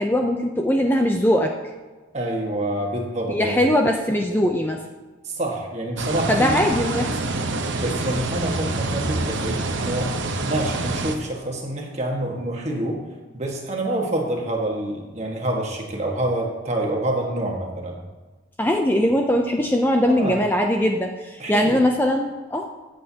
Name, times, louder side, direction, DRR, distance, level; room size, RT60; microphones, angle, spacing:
voice 1, 0.0-1.5 3.3-4.8 6.3-7.1 18.6-22.7, left 1 dB, 10° left, 2 dB, 0.5 m, -21 dB
voice 2, 2.1-3.7 5.2-7.2 7.5-10.1 10.4-13.0 13.3-18.0 20.1-20.4 21.4-21.8, right 1 dB, 35° right, 0 dB, 1.6 m, -27 dB
sound 1, 6.0-11.2, right 2 dB, 65° right, 0.9 m, -26 dB
15.0 x 7.9 x 2.8 m, 1.3 s
head